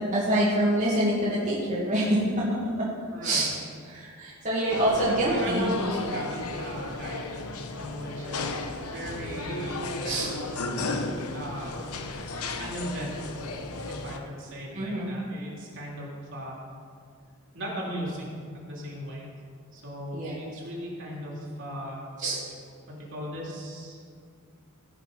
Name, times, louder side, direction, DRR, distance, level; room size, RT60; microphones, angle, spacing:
voice 1, 0.1-2.2 3.2-3.5 3.9-5.7 10.0-10.3 14.7-15.1 20.1-20.4 22.2-22.4, right 1 dB, 35° right, -8 dB, 2.2 m, -26 dB
voice 2, 3.1-3.5 5.0-8.7 8.9-10.8 11.3-11.8 12.6-13.5 13.9-16.6 17.5-19.3 19.7-22.1 22.9-24.0, equal, 60° right, -4 dB, 3.2 m, -37 dB
sound 1, 4.7-14.2, left 2 dB, 85° left, 0.9 m, -34 dB
16.5 x 6.4 x 5.4 m, 2.2 s
head